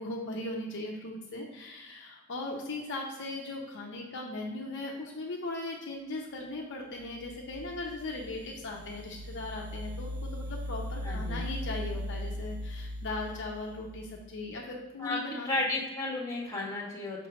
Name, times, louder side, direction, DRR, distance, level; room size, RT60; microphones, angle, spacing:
voice 1, 0.0-15.5, left 2 dB, 55° left, -1 dB, 0.8 m, -38 dB
sound 1, 7.0-14.5, equal, 70° right, 0.5 m, -39 dB
voice 2, 11.0-11.4 15.0-15.2 15.4-17.3, left 2 dB, 15° left, -4 dB, 1.6 m, -33 dB
5.9 x 3.3 x 5.0 m, 1.1 s
head